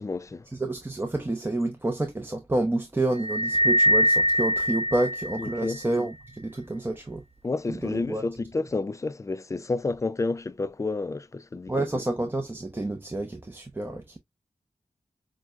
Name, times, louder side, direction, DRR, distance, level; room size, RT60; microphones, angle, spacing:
voice 1, 0.0-0.5 5.4-5.8 7.4-11.9, left 3 dB, 25° left, 0.3 m, -30 dB
voice 2, 0.6-7.2 7.7-8.2 11.7-14.2, right 2 dB, 15° right, 0.7 m, -29 dB
sound 1, 3.2-5.8, equal, 55° right, 0.5 m, -23 dB
6.1 x 2.2 x 2.3 m
wide cardioid pair, 85°, 12 cm